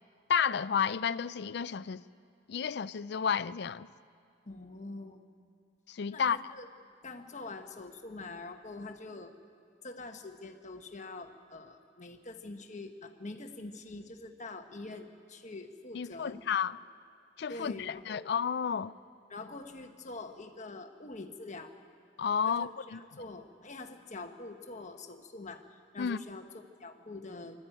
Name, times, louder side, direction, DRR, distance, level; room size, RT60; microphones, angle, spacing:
voice 1, 0.3-2.0 2.5-3.9 5.9-6.4 15.9-16.8 17.4-18.9 22.2-23.0 26.0-26.2, left 7 dB, 65° left, 0.4 m, -31 dB
voice 2, 4.4-5.2 6.1-6.7 7.0-9.3 9.8-16.4 17.5-18.3 19.3-21.7 22.5-27.6, left 3 dB, 40° left, 1.3 m, -45 dB
23.0 x 13.0 x 9.1 m
head